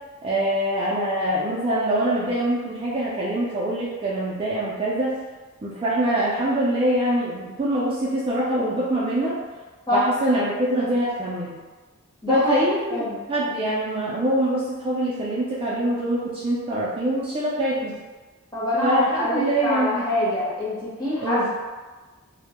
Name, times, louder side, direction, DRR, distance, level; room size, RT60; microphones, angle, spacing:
voice 1, 0.2-5.1 5.6-9.4 9.9-11.6 12.3-17.9 18.8-20.2 21.2-21.4, right 1 dB, 25° right, -7 dB, 0.3 m, -24 dB
voice 2, 12.2-12.6 12.9-13.2 18.5-21.5, left 1 dB, 20° left, -10 dB, 0.8 m, -25 dB
2.1 x 2.0 x 2.8 m, 1.3 s
head